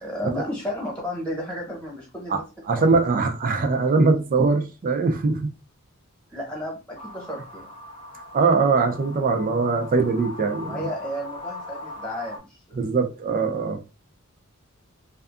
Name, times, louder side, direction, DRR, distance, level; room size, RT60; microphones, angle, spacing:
voice 1, 0.0-2.4 2.8-2.9 6.3-7.7 10.6-12.8, equal, 5° left, 1.0 m, -33 dB
voice 2, 2.7-5.5 8.3-10.9 12.7-13.9, right 4 dB, 40° right, 0.3 m, -21 dB
sound 1, 6.9-12.4, left 2 dB, 25° left, 0.5 m, -40 dB
2.6 x 2.3 x 2.3 m
head